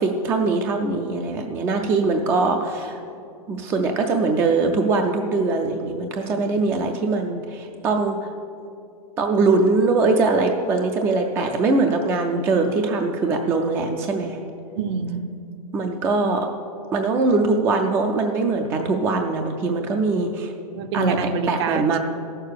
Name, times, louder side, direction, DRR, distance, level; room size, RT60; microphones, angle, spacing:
voice 1, 0.0-3.0 3.5-8.2 9.2-14.4 15.7-16.5 16.9-20.5 20.9-21.2 21.5-22.0, right 3 dB, 10° right, 4 dB, 0.3 m, -22 dB
voice 2, 14.7-15.2 20.7-22.0, right 5 dB, 45° right, 11 dB, 0.7 m, -26 dB
14.0 x 6.6 x 6.5 m, 2.5 s
supercardioid pair, 160°, 19 cm